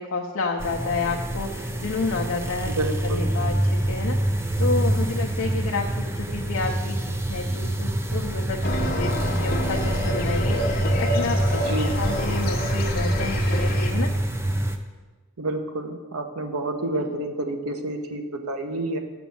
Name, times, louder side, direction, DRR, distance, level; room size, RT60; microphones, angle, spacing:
voice 1, 0.0-2.7 3.0-14.1 17.0-17.1, left 3 dB, 70° left, -1 dB, 0.6 m, -30 dB
sound 1, 0.6-14.8, right 1 dB, 10° right, 0.3 m, -26 dB
voice 2, 2.7-3.3 11.5-12.0 15.4-19.0, right 2 dB, 80° right, 6 dB, 0.9 m, -29 dB
sound 2, 8.6-13.9, left 1 dB, 40° left, 0.8 m, -28 dB
6.1 x 6.0 x 7.0 m, 1.3 s
head